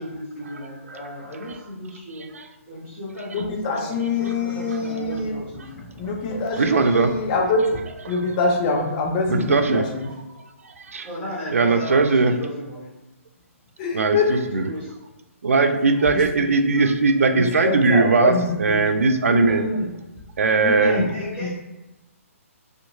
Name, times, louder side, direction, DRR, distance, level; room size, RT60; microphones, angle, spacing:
voice 1, 0.0-2.3 2.7-5.6 9.4-9.8 11.0-12.9 14.5-14.9 20.8-21.5, left 1 dB, 10° right, -14 dB, 1.2 m, -35 dB
voice 2, 3.3-10.1 13.8-14.4 16.1-16.2 17.3-18.6 19.3-19.9 20.6-21.1 21.4-21.5, left 3 dB, 30° left, 0 dB, 0.5 m, -25 dB
voice 3, 6.6-7.1 8.1-8.2 9.3-9.9 10.9-11.1 11.5-12.3 13.9-14.7 15.4-19.7 20.4-21.0, right 4 dB, 70° right, 7 dB, 0.3 m, -19 dB
2.7 x 2.4 x 2.6 m, 1.0 s
figure-of-eight pair, 130°, 8 cm